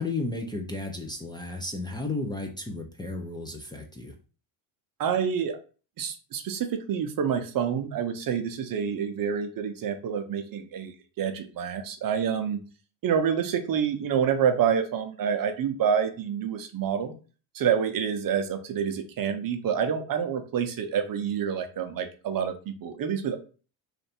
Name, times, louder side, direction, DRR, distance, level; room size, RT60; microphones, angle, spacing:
voice 1, 0.0-4.2, left 2 dB, 10° left, 1 dB, 0.5 m, -33 dB
voice 2, 5.0-5.6 6.0-12.6 13.0-17.1 17.5-23.4, right 7 dB, 45° right, 7 dB, 0.7 m, -27 dB
3.2 x 2.6 x 4.3 m, 0.36 s
cardioid pair, 100°, 49 cm